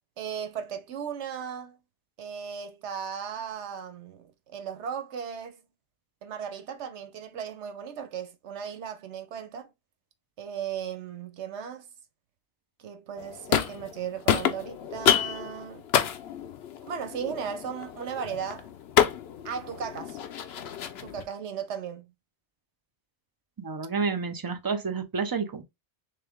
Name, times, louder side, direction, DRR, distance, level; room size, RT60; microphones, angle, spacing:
voice 1, 0.2-1.8 2.2-5.6 6.2-9.7 10.4-11.9 12.8-15.9 16.8-18.7 19.4-20.2 21.0-22.1, right 7 dB, 80° right, 1.1 m, -36 dB
sound 1, 13.2-14.0 14.3-21.2, left 9 dB, 70° left, 0.8 m, -28 dB
voice 2, 23.6-25.6, right 5 dB, 30° right, 0.4 m, -30 dB
3.5 x 3.3 x 3.5 m
omnidirectional pair, 1.2 m